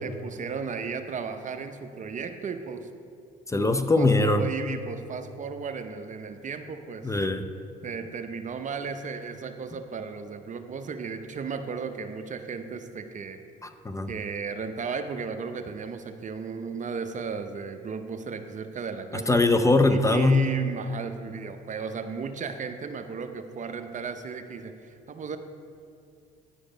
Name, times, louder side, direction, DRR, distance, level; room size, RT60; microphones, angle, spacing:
voice 1, 0.0-2.9 3.5-7.1 7.8-13.4 14.1-19.4 19.9-25.4, right 5 dB, 40° right, 8 dB, 0.6 m, -35 dB
voice 2, 3.5-4.5 7.0-7.4 13.6-14.1 19.3-20.4, left 2 dB, 15° left, 8 dB, 0.5 m, -21 dB
10.0 x 5.1 x 5.1 m, 2.4 s
supercardioid pair, 65°, 19 cm